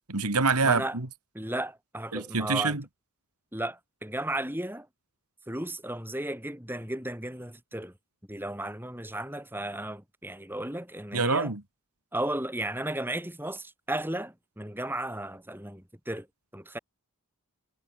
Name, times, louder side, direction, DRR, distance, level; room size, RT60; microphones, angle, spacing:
voice 1, 0.1-1.1 2.1-2.8 11.1-11.6, right 4 dB, 90° right, 2.6 m, -26 dB
voice 2, 0.6-1.0 1.3-2.8 3.5-4.9 5.5-7.9 8.3-11.5 12.1-16.3 16.5-16.8, right 1 dB, 10° right, 7.9 m, -34 dB
head